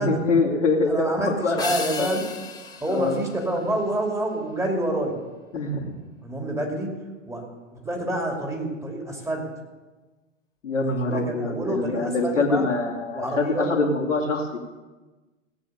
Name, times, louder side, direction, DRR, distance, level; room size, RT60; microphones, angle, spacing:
voice 1, 0.0-2.1 2.9-3.1 5.5-5.9 10.6-14.6, left 3 dB, 70° left, -2 dB, 2.5 m, -24 dB
voice 2, 0.9-2.2 2.8-5.2 6.2-6.9 7.3-9.5 10.8-12.7 13.1-13.7, right 1 dB, 5° right, 1 dB, 2.7 m, -28 dB
sound 1, 1.6-4.2, left 4 dB, 10° left, 1.6 m, -35 dB
17.5 x 8.4 x 6.8 m, 1.2 s
figure-of-eight pair, 100°, 38 cm